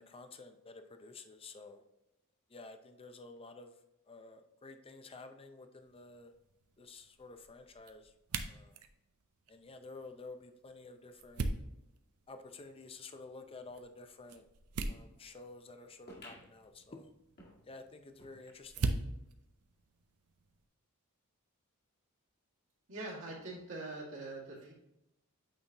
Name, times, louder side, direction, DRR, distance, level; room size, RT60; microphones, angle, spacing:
voice 1, 0.0-1.8 2.5-3.8 4.1-6.3 6.8-8.1 8.5-8.8 9.5-11.5 12.3-14.5 14.9-17.1 17.6-18.9, left 3 dB, 25° left, 7 dB, 0.6 m, -51 dB
sound 1, 5.8-20.7, right 3 dB, 90° right, 0.6 m, -44 dB
sound 2, 16.1-19.0 19.5-19.6 19.8-19.9 20.6-20.7, left 1 dB, 45° left, 1.8 m, -57 dB
voice 2, 22.9-24.7, right 2 dB, 65° right, -5 dB, 2.2 m, -43 dB
8.9 x 4.2 x 2.9 m, 0.88 s
head